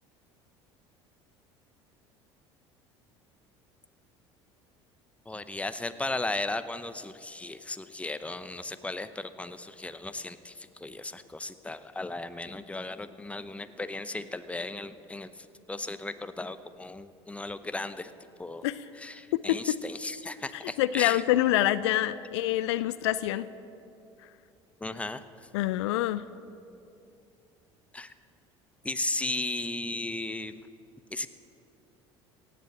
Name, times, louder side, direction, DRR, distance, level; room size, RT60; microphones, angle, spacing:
voice 1, 5.3-18.1 18.4-18.6 18.9-21.2 24.8-25.5 27.9-28.1 28.8-30.5 31.1-31.3, left 2 dB, 10° left, 12 dB, 0.7 m, -36 dB
voice 2, 20.8-23.5 25.5-26.2, left 14 dB, 75° left, 16 dB, 0.4 m, -26 dB
17.0 x 7.6 x 8.6 m, 2.6 s
hypercardioid pair, 70°, 15 cm